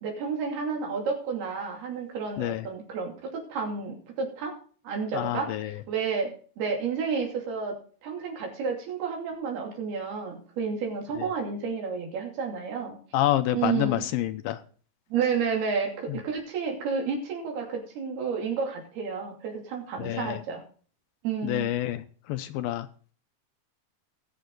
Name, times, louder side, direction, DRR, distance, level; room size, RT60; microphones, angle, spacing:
voice 1, 0.0-4.5 4.8-7.7 8.0-13.0 13.5-14.0 15.1-20.6 21.2-21.7, right 5 dB, 75° right, 1 dB, 4.7 m, -31 dB
voice 2, 5.1-5.7 13.1-14.6 16.1-16.2 20.0-20.4 21.4-22.0 22.3-22.9, left 13 dB, 75° left, 11 dB, 2.4 m, -27 dB
20.0 x 7.0 x 3.9 m, 0.42 s
omnidirectional pair, 4.5 m